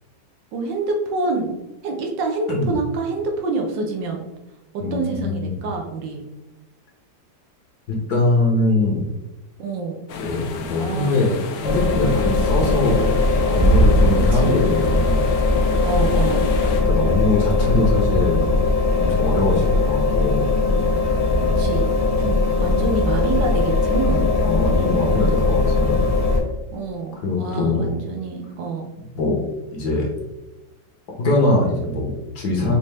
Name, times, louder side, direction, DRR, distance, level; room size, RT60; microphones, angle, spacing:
voice 1, 0.5-1.5 1.8-4.2 4.7-6.2 9.6-10.0 10.7-11.2 14.1-14.6 15.8-16.5 21.4-21.9 22.2-24.3 26.7-28.8, right 3 dB, 70° right, 2 dB, 1.4 m, -27 dB
voice 2, 4.8-5.5 7.9-9.1 10.2-13.1 13.5-15.3 16.7-18.6 19.0-20.6 22.0-22.3 24.2-26.0 27.2-27.8 29.1-29.4 29.7-30.1 31.2-32.8, left 2 dB, 60° left, -1 dB, 1.4 m, -22 dB
sound 1, 10.1-16.8, left 5 dB, 75° left, 0.8 m, -33 dB
sound 2, 11.6-26.4, left 2 dB, 35° left, 0.6 m, -19 dB
5.3 x 2.7 x 3.3 m, 1.0 s
omnidirectional pair, 2.1 m